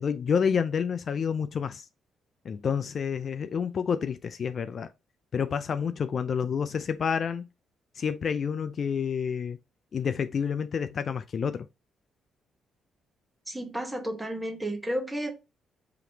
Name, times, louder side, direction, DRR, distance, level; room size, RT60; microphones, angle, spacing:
voice 1, 0.0-1.9 2.4-4.9 5.3-7.5 8.0-9.6 9.9-11.7, left 7 dB, 50° left, 0.3 m, -29 dB
voice 2, 13.5-15.3, equal, 10° right, 1.0 m, -32 dB
4.9 x 2.9 x 2.7 m
cardioid pair, 90°, 0 cm